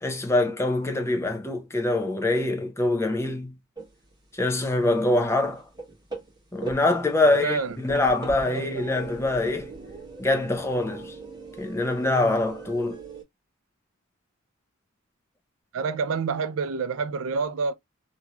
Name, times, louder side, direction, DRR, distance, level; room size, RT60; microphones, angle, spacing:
voice 1, 0.0-3.5 4.3-5.6 6.5-9.7 10.2-11.2 11.6-13.0, left 2 dB, 15° left, 0.6 m, -24 dB
sound 1, 3.8-4.2 4.5-13.2, right 4 dB, 20° right, 1.2 m, -40 dB
voice 2, 7.2-7.8 8.4-9.0 15.7-17.7, right 5 dB, 80° right, 0.5 m, -28 dB
3.0 x 2.7 x 2.2 m
head